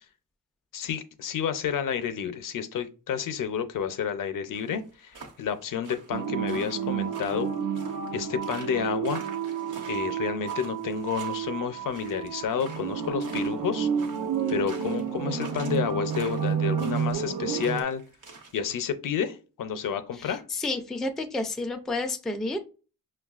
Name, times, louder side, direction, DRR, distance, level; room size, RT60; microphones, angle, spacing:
voice 1, 0.7-7.5 8.1-9.2 9.9-13.9 14.5-18.0 18.5-20.4, left 7 dB, 65° left, 0.6 m, -30 dB
sound 1, 4.5-18.6, right 4 dB, 60° right, 1.0 m, -46 dB
sound 2, 6.1-17.8, right 7 dB, 75° right, 0.6 m, -30 dB
voice 2, 20.1-22.6, left 2 dB, ahead, 0.3 m, -31 dB
6.0 x 2.3 x 2.4 m
wide cardioid pair, 155°, 35 cm